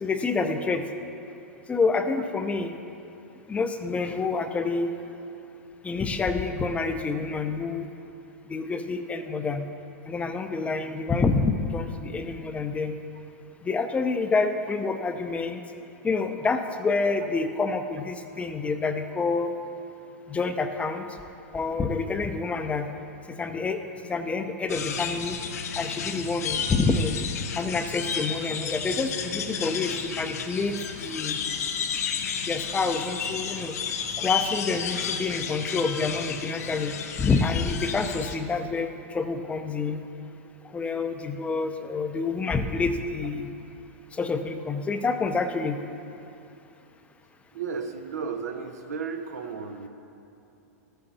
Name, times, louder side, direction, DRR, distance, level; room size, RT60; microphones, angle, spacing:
voice 1, 0.0-0.8 1.7-2.8 3.5-5.0 5.8-7.9 8.5-9.7 10.1-12.9 13.6-15.6 16.0-19.5 20.3-21.0 21.5-22.9 23.3-23.8 24.1-25.4 25.8-27.2 27.6-31.4 32.4-33.7 34.2-36.9 37.2-40.0 40.7-43.5 44.1-45.8, left 4 dB, 15° left, 7 dB, 0.6 m, -27 dB
sound 1, 24.7-38.4, left 7 dB, 80° left, 0.8 m, -32 dB
voice 2, 47.5-49.9, right 5 dB, 85° right, 6 dB, 0.9 m, -34 dB
12.0 x 8.0 x 4.1 m, 2.7 s
hypercardioid pair, 120°, 8 cm